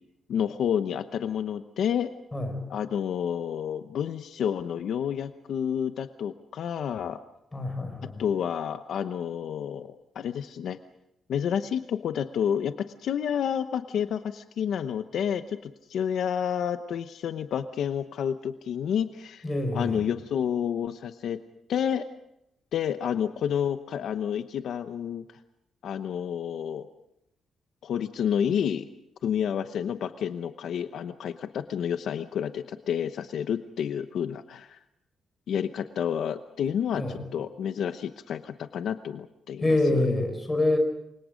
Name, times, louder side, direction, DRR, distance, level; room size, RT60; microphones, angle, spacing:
voice 1, 0.3-2.1 2.7-7.2 8.2-10.8 11.3-19.4 19.7-21.4 21.7-22.1 22.7-25.2 25.8-26.9 27.8-28.9 29.2-34.8 35.5-40.0, left 8 dB, 70° left, 9 dB, 0.9 m, -30 dB
voice 2, 7.5-8.2 19.4-20.0 36.9-37.2 39.6-40.8, left 2 dB, 15° left, 5 dB, 5.1 m, -26 dB
29.0 x 24.5 x 5.2 m, 0.82 s
cardioid pair, 155°, 0 cm